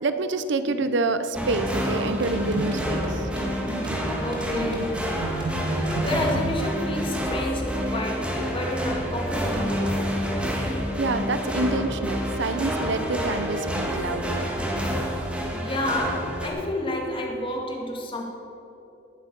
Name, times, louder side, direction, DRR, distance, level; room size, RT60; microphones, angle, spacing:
voice 1, 0.0-3.3 11.0-14.5, right 3 dB, 60° right, 11 dB, 0.6 m, -27 dB
sound 1, 1.3-16.5, equal, 5° right, 1.7 m, -28 dB
sound 2, 1.7-6.7, right 2 dB, 25° right, 3.5 m, -33 dB
voice 2, 4.2-5.1 5.7-9.9 15.5-18.2, left 1 dB, 25° left, 0 dB, 2.0 m, -30 dB
19.0 x 7.4 x 6.8 m, 2.9 s
head